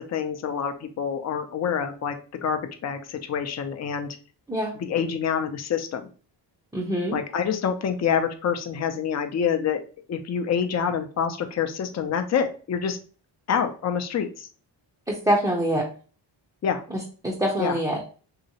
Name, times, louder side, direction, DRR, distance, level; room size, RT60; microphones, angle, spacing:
voice 1, 0.1-2.1 2.4-4.1 4.7-6.0 7.1-9.8 10.1-13.0 13.5-14.5 16.6-16.8 17.6-17.8, left 7 dB, 40° left, 7 dB, 0.5 m, -26 dB
voice 2, 6.7-7.2 15.1-15.8 17.2-18.0, equal, 10° right, -4 dB, 0.6 m, -24 dB
2.9 x 2.8 x 2.8 m, 0.39 s
wide cardioid pair, 105°, 44 cm